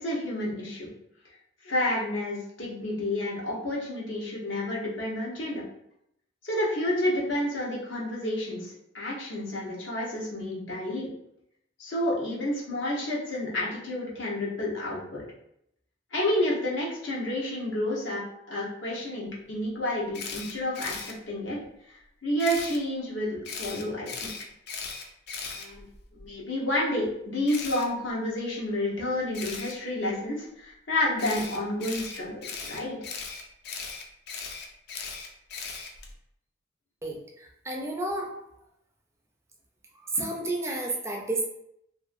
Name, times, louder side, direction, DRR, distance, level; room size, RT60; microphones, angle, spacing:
voice 1, 0.0-0.9 1.6-5.6 6.4-11.1 11.8-15.2 16.1-18.2 18.5-21.6 22.2-24.3 25.5-25.8 26.1-33.0 40.2-40.3, left 1 dB, 80° left, -4 dB, 0.8 m, -30 dB
Camera, 20.1-21.1 22.4-22.8 23.4-26.2 27.5-27.8 29.3-29.7 31.2-36.1, left 5 dB, 60° left, 0.4 m, -38 dB
voice 2, 37.0-38.3 40.1-41.4, right 2 dB, 15° right, 0 dB, 0.4 m, -31 dB
2.6 x 2.5 x 2.4 m, 0.76 s
head